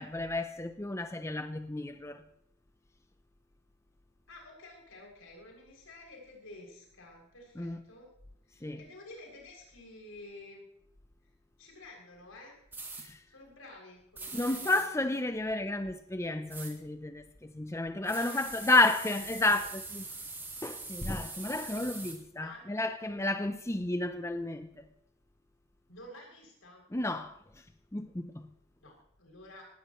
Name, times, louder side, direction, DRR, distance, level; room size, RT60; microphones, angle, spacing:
voice 1, 0.0-2.2 7.6-7.8 8.6-8.8 13.0-13.2 14.3-20.0 20.6-24.8 26.9-27.4 27.9-28.5, left 2 dB, 15° left, 0.5 m, -31 dB
voice 2, 4.3-8.1 8.5-10.6 11.6-12.6 13.3-14.8 18.0-19.6 22.4-22.6 25.9-26.8 28.8-29.6, left 2 dB, 85° left, 6.6 m, -51 dB
sound 1, 12.7-13.1 14.2-14.9 16.5-16.7 18.1-22.2, right 3 dB, 10° right, 2.1 m, -42 dB
19.0 x 16.5 x 3.1 m
head